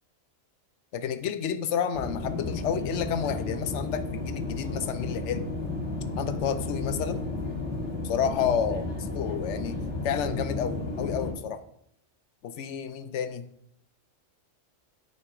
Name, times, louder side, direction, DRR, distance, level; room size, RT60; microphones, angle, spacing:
voice 1, 0.9-5.5 6.2-7.2 8.0-9.8 10.0-11.6 12.4-13.5, left 8 dB, 70° left, 11 dB, 0.9 m, -30 dB
sound 1, 1.9-11.3, left 2 dB, 50° left, 1.9 m, -33 dB
8.8 x 4.2 x 4.7 m, 0.72 s
omnidirectional pair, 1.4 m